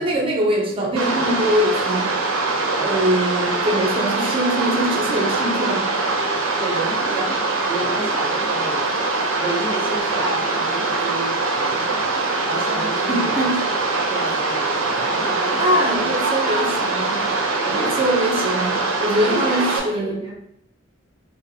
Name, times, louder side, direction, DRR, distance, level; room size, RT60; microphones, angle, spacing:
voice 1, 0.0-2.2 2.8-5.9 13.1-13.6 15.6-17.2 17.8-20.2, equal, 25° right, 0.5 m, -22 dB
sound 1, 1.0-19.8, right 3 dB, 90° right, 0.5 m, -23 dB
voice 2, 2.7-3.1 6.5-8.8 9.3-13.7 14.0-16.9 17.6-18.1 19.3-20.3, right 1 dB, 5° left, 1.0 m, -30 dB
3.6 x 2.0 x 2.7 m
head